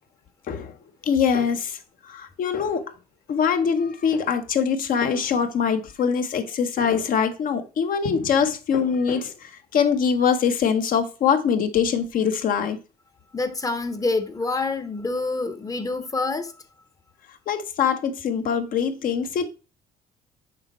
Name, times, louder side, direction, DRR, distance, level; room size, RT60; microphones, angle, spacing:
voice 1, 1.0-2.9 3.3-12.8 17.5-19.5, left 7 dB, 55° left, 1.0 m, -23 dB
voice 2, 13.3-16.5, left 3 dB, 20° left, 0.9 m, -27 dB
6.6 x 4.4 x 4.2 m
cardioid pair, 110°, 17 cm